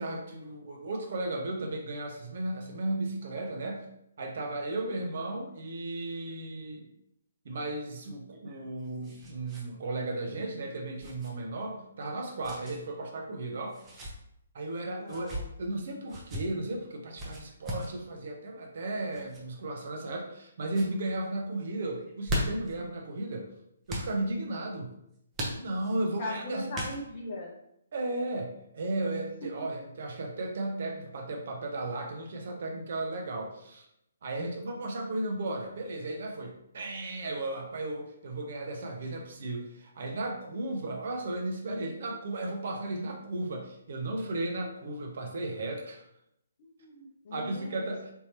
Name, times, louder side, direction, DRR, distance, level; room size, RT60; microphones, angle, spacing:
voice 1, 0.0-3.8 4.2-6.9 7.4-13.8 14.5-23.5 23.9-24.9 25.5-26.7 27.9-33.9 34.2-46.0 47.3-48.1, right 2 dB, 55° right, 2 dB, 0.7 m, -35 dB
sound 1, 8.3-9.7 9.9-10.1 11.0-11.3 12.4-12.8 13.7-14.1 15.0-15.4 16.1-16.4 17.2-17.9 19.1-19.4 20.0-20.4 20.7-20.9 22.0-22.7 23.9-24.1 25.3-26.0 26.7-27.3, equal, 20° right, 0.8 m, -37 dB
voice 2, 15.0-15.4 26.2-27.5 46.6-47.8, left 2 dB, 45° left, -3 dB, 0.6 m, -39 dB
3.6 x 2.8 x 2.8 m, 0.77 s
figure-of-eight pair, 135°, 0 cm